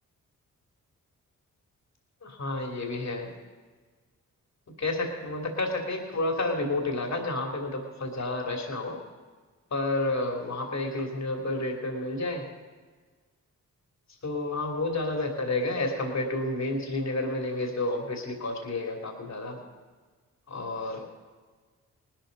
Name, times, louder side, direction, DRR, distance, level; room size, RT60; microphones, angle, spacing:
voice 1, 2.2-3.3 4.8-9.0 9.7-12.4 14.2-19.6 20.5-21.0, left 2 dB, 50° left, 1 dB, 2.8 m, -30 dB
19.0 x 12.5 x 4.0 m, 1.5 s
supercardioid pair, 45°, 34 cm